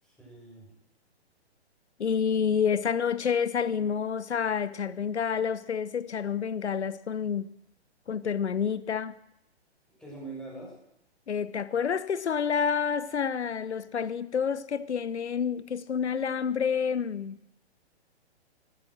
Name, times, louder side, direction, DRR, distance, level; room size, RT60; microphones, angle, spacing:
voice 1, 0.0-0.7 9.9-10.8, right 3 dB, ahead, 6.8 m, -43 dB
voice 2, 2.0-7.5 8.1-9.2 11.3-17.4, left 7 dB, 85° left, 0.9 m, -28 dB
14.5 x 14.0 x 6.4 m
hypercardioid pair, 135°, 33 cm